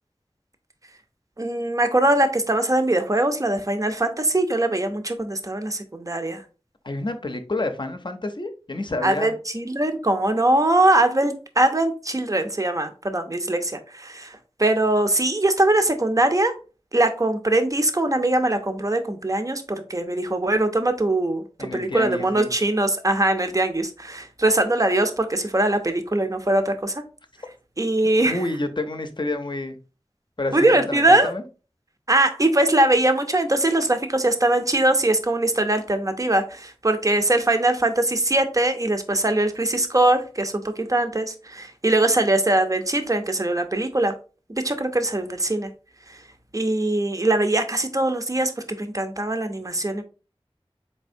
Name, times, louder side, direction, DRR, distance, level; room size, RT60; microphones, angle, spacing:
voice 1, 1.4-6.4 9.0-14.3 14.6-16.5 16.9-21.4 21.7-26.9 27.8-28.4 30.5-31.3 32.1-44.1 44.5-45.7 46.5-48.5 48.8-50.0, right 1 dB, 30° right, 0.6 m, -21 dB
voice 2, 6.8-9.3 21.6-22.5 28.3-29.8 30.4-31.4, left 2 dB, 50° left, 0.6 m, -29 dB
4.1 x 3.3 x 2.6 m
wide cardioid pair, 45°, 11 cm